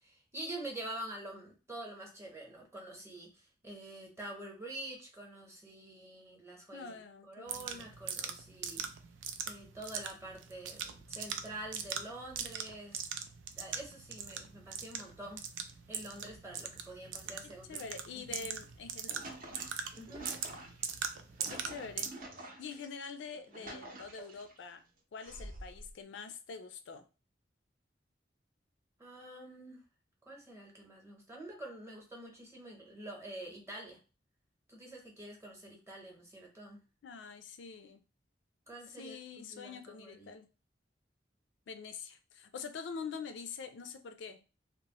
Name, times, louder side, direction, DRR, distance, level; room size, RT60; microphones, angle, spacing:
voice 1, 0.0-7.0 7.3-8.9 9.5-13.1 13.6-15.5 15.9-17.8 18.3-18.5 20.0-20.4 29.0-29.8 30.3-34.0 34.7-36.8 38.7-40.3, right 1 dB, 15° right, 0.8 m, -47 dB
voice 2, 6.7-7.9 17.4-19.2 21.5-24.8 25.1-27.1 37.0-38.0 38.9-40.5 41.7-44.4, left 5 dB, 80° left, 0.4 m, -45 dB
sound 1, 7.5-22.1, right 7 dB, 90° right, 0.4 m, -41 dB
sound 2, 18.8-22.9 23.3-24.6 25.2-25.9, right 1 dB, 50° right, 0.6 m, -48 dB
2.9 x 2.0 x 2.8 m
head